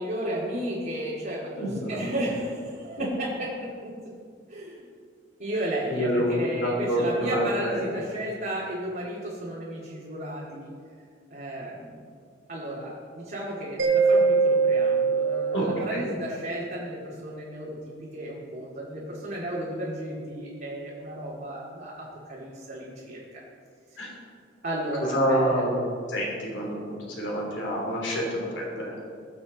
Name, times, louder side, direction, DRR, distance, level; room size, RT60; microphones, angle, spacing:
voice 1, 0.0-3.9 4.5-4.9 5.4-10.7 11.3-12.0 12.5-23.4 24.6-25.6, right 1 dB, 55° right, -7 dB, 2.3 m, -33 dB
voice 2, 1.5-2.0 5.9-6.3 6.6-7.9 15.5-16.0 24.0-24.1 25.1-25.7 26.1-28.9, equal, 75° left, -3 dB, 3.2 m, -27 dB
Mallet percussion, 13.8-16.3, right 4 dB, 85° right, 2.0 m, -23 dB
20.5 x 7.3 x 4.0 m, 2.2 s
head